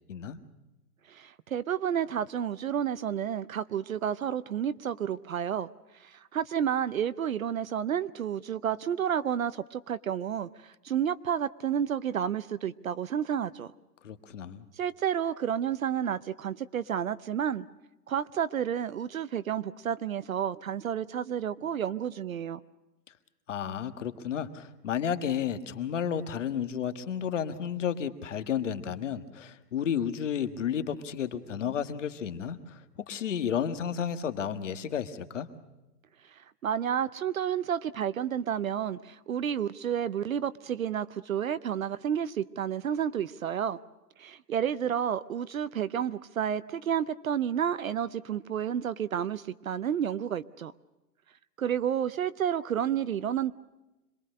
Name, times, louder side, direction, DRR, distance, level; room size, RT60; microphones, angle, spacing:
voice 1, 1.1-5.7 6.0-13.7 14.8-17.7 18.1-22.6 36.3-43.8 44.2-50.7 51.6-53.5, right 9 dB, 55° right, 0.7 m, -30 dB
voice 2, 14.0-14.6 23.5-35.5, left 8 dB, 50° left, 1.6 m, -32 dB
26.5 x 21.5 x 6.5 m
hypercardioid pair, 175°, 49 cm